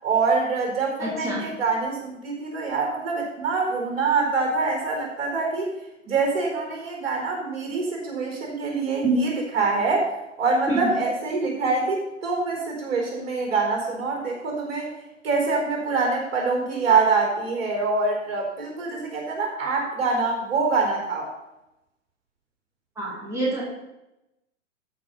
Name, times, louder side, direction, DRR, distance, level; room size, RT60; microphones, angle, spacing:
voice 1, 0.0-5.7 6.0-10.1 10.4-14.9 15.2-21.3, right 4 dB, 50° right, 1 dB, 4.3 m, -25 dB
voice 2, 1.0-1.4 9.0-9.2 10.7-10.9 23.0-23.6, right 3 dB, 5° right, -7 dB, 2.7 m, -26 dB
13.5 x 5.5 x 5.5 m, 0.92 s
figure-of-eight pair, 125°, 39 cm